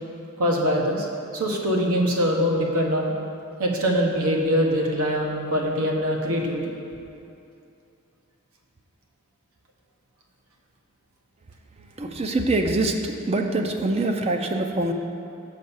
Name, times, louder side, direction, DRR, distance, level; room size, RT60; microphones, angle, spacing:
voice 1, 0.4-1.1 1.3-3.1 3.6-6.7, equal, 85° right, -1 dB, 1.2 m, -23 dB
voice 2, 12.0-14.9, right 2 dB, 30° right, 4 dB, 0.4 m, -24 dB
6.5 x 5.4 x 7.0 m, 2.7 s
head